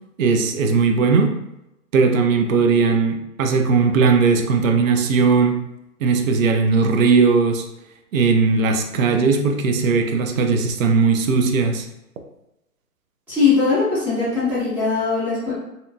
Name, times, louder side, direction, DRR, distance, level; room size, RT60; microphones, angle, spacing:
voice 1, 0.2-1.3 1.9-5.6 6.0-7.6 8.1-11.9, right 4 dB, 60° right, 5 dB, 0.5 m, -18 dB
voice 2, 13.3-15.5, left 4 dB, 5° right, -11 dB, 0.6 m, -20 dB
2.8 x 2.2 x 2.6 m, 0.89 s
hypercardioid pair, 135°, 47 cm